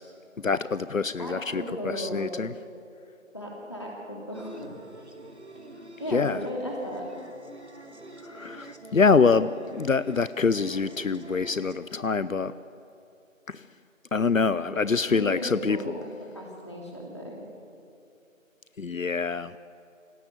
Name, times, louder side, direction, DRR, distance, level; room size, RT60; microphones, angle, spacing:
voice 1, 0.4-2.5 6.1-6.5 8.2-12.5 13.5-13.7 14.1-16.1 18.8-19.6, left 4 dB, 75° left, 16 dB, 0.8 m, -25 dB
voice 2, 1.2-2.3 3.3-4.7 6.0-7.1 14.7-16.0 16.3-17.4, equal, 20° left, -2 dB, 2.9 m, -36 dB
sound 1, 4.3-11.8, right 1 dB, 55° right, 2.4 m, -46 dB
26.5 x 17.5 x 8.1 m, 2.6 s
figure-of-eight pair, 180°, 40 cm